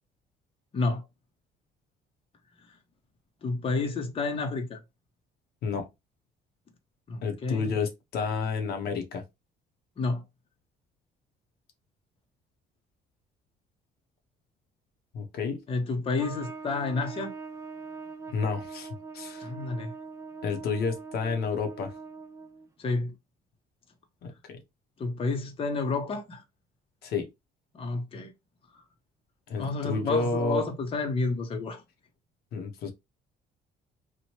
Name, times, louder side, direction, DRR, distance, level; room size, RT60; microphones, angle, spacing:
voice 1, 0.7-1.0 3.4-4.8 7.1-7.7 10.0-10.2 15.7-17.3 19.4-19.9 22.8-23.1 25.0-26.4 27.7-28.3 28.7-28.8 29.6-31.8, left 3 dB, 35° left, 0.7 m, -30 dB
voice 2, 7.2-9.2 15.1-15.6 18.3-18.9 19.1-19.5 20.4-21.9 24.2-24.6 27.0-27.3 29.5-30.6 32.5-32.9, left 4 dB, 70° left, 0.7 m, -30 dB
Trumpet, 16.2-22.7, right 4 dB, 20° right, 0.4 m, -42 dB
2.9 x 2.1 x 2.8 m
cardioid pair, 110°, 17 cm